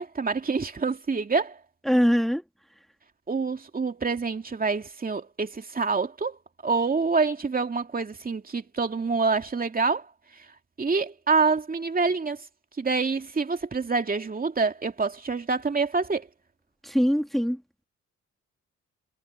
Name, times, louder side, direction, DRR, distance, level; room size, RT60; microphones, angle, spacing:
voice 1, 0.0-1.6 3.3-6.4 6.6-10.1 10.8-12.4 12.8-16.3, right 4 dB, 30° right, 2.6 m, -26 dB
voice 2, 1.9-2.4 16.8-17.6, equal, ahead, 2.3 m, -22 dB
cardioid pair, 90°, 30 cm